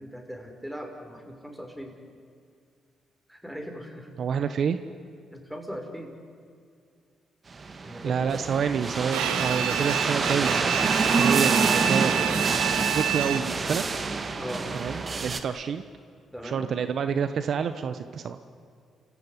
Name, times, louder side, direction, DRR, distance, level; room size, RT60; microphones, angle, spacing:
voice 1, 0.0-1.9 3.3-4.1 5.3-6.1 7.8-8.4 14.4-14.6 16.3-16.7, equal, 5° right, 3 dB, 6.1 m, -39 dB
voice 2, 4.2-4.8 8.0-13.9 14.7-15.8 16.4-18.4, right 7 dB, 65° right, 10 dB, 1.0 m, -28 dB
sound 1, 7.5-15.4, right 4 dB, 45° right, 1.9 m, -27 dB
Bowed string instrument, 9.1-13.7, right 10 dB, 90° right, 1.2 m, -28 dB
29.5 x 16.0 x 9.8 m, 2.2 s
supercardioid pair, 55°, 0 cm